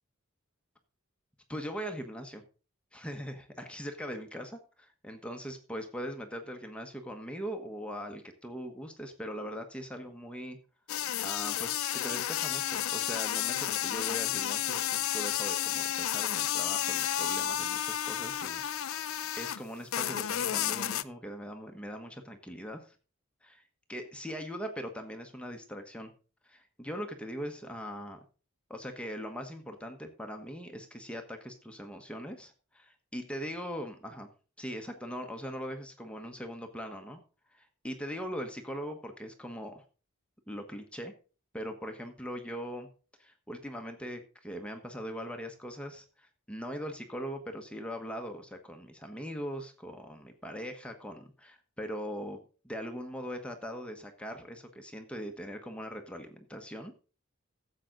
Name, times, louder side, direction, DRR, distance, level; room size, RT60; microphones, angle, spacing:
voice 1, 1.5-2.4 2.9-10.6 11.2-19.1 19.4-22.9 23.4-23.6 23.9-26.1 26.4-28.2 28.7-32.8 33.1-34.3 34.6-37.2 37.5-39.8 40.5-41.1 41.5-42.9 43.2-56.9, equal, 5° left, 4 dB, 1.2 m, -41 dB
sound 1, 10.9-19.6 19.9-21.0, left 11 dB, 85° left, 0.5 m, -32 dB
15.0 x 7.8 x 3.9 m, 0.36 s
head